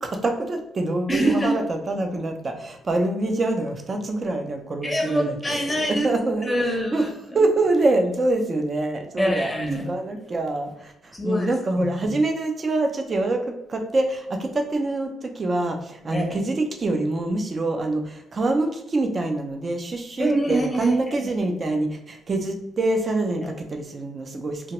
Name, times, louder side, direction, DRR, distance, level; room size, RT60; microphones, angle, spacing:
voice 1, 0.0-5.6 5.9-6.5 6.9-7.1 7.3-9.5 9.9-24.7, right 2 dB, 35° right, 5 dB, 0.5 m, -25 dB
voice 2, 1.1-1.5 4.8-6.1 6.5-7.4 9.2-9.9 11.1-11.5 12.0-12.1 16.1-16.4 20.2-21.3 23.4-23.5, right 1 dB, 10° left, 1 dB, 0.7 m, -24 dB
2.9 x 2.2 x 2.9 m, 0.81 s
cardioid pair, 90°, 0 cm